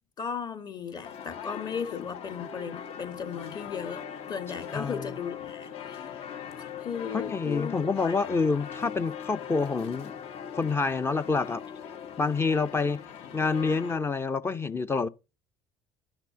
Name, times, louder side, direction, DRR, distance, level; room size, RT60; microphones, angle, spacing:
voice 1, 0.2-6.2 6.6-8.4, left 7 dB, 40° left, 1.6 m, -36 dB
sound 1, 1.0-14.0, left 7 dB, 60° left, 1.2 m, -41 dB
voice 2, 4.7-5.1 7.1-10.1 10.5-11.6 12.2-13.0 13.3-15.1, left 4 dB, 20° left, 0.5 m, -27 dB
11.5 x 6.0 x 6.7 m
cardioid pair, 125°, 11 cm